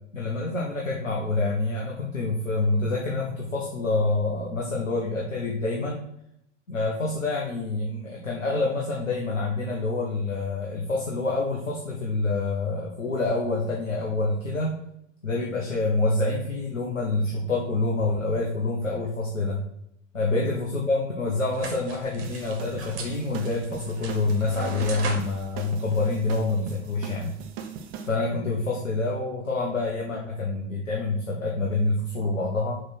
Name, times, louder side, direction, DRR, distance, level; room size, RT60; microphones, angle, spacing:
voice 1, 0.1-6.0 6.7-14.8 15.2-19.6 20.1-27.3 28.1-32.8, left 3 dB, 85° left, -2 dB, 1.3 m, -27 dB
sound 1, 21.5-26.8, right 3 dB, 60° right, 1.7 m, -39 dB
sound 2, 22.2-28.1, right 6 dB, 40° right, 1.0 m, -40 dB
6.5 x 3.6 x 6.0 m, 0.75 s
figure-of-eight pair, 85°, 38 cm